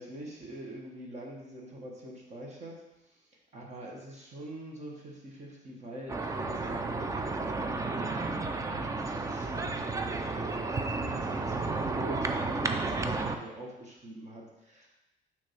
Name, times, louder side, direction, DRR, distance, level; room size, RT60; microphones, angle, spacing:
voice 1, 0.0-2.8 3.0-7.3 7.8-8.3 8.6-14.9, right 1 dB, 40° right, -2 dB, 1.4 m, -44 dB
sound 1, 6.1-13.4, right 3 dB, 15° right, 0.5 m, -32 dB
6.3 x 3.5 x 5.7 m, 0.95 s
cardioid pair, 125°, 18 cm